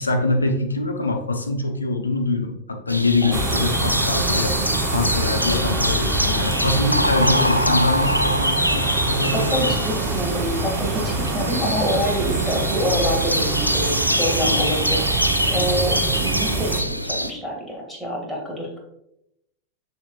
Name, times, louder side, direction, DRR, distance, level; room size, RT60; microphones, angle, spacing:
voice 1, 0.0-4.6 4.9-9.8, left 2 dB, 80° left, 4 dB, 0.8 m, -24 dB
sound 1, 2.9-17.3, equal, 90° right, 0.3 m, -24 dB
sound 2, 3.3-16.8, right 3 dB, 30° right, 1.1 m, -26 dB
voice 2, 9.3-15.2 15.5-18.8, equal, ahead, -3 dB, 2.2 m, -26 dB
6.8 x 6.6 x 2.5 m, 0.82 s
figure-of-eight pair, 90°, 0 cm